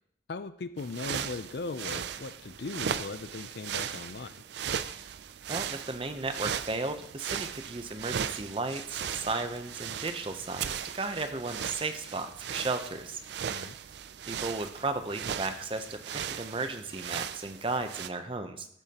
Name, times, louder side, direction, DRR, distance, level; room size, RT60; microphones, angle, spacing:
voice 1, 0.3-4.4 13.5-13.8, left 3 dB, 60° left, 13 dB, 0.5 m, -38 dB
sound 1, 0.8-18.1, right 8 dB, 65° right, 0.4 m, -37 dB
voice 2, 5.5-13.2 14.3-18.7, right 3 dB, 30° right, 8 dB, 0.7 m, -35 dB
13.5 x 6.9 x 2.9 m, 0.70 s
head